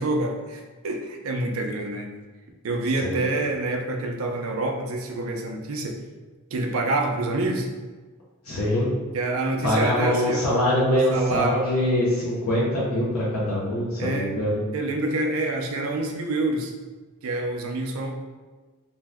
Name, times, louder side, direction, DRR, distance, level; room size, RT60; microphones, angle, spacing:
voice 1, 0.0-2.1 2.6-6.0 6.5-7.7 9.1-10.4 11.1-11.6 14.0-14.3 14.7-16.7 17.2-18.1, right 2 dB, 70° right, 2 dB, 0.4 m, -27 dB
voice 2, 8.4-8.9 9.6-14.6, left 1 dB, 75° left, -8 dB, 0.6 m, -23 dB
2.6 x 2.1 x 3.4 m, 1.3 s
head